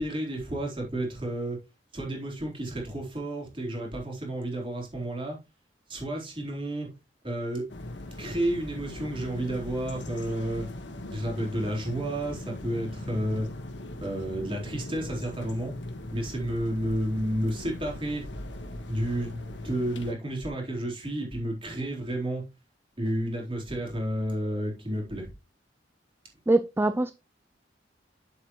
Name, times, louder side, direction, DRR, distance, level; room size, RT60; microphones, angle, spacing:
voice 1, 0.0-1.6 1.9-5.4 5.9-6.9 7.2-7.7 8.2-10.7 11.1-13.5 14.0-15.7 16.1-18.3 18.8-22.4 23.0-25.3, right 1 dB, 30° right, 3.8 m, -31 dB
sound 1, 7.7-20.1, left 1 dB, 80° left, 1.5 m, -40 dB
voice 2, 26.5-27.1, right 2 dB, 10° right, 0.3 m, -23 dB
8.9 x 7.6 x 3.1 m
head